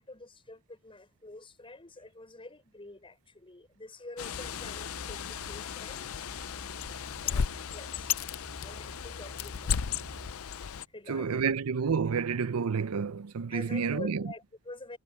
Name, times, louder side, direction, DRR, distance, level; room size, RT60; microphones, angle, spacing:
voice 1, 0.0-6.3 7.1-8.2 8.6-9.8 10.9-11.5 13.5-15.0, left 2 dB, 25° left, 6.3 m, -47 dB
Bird, 4.2-10.8, left 8 dB, 70° left, 0.5 m, -35 dB
sound 1, 4.3-10.3, equal, 60° right, 3.9 m, -48 dB
voice 2, 11.1-14.3, right 5 dB, 90° right, 0.6 m, -29 dB
head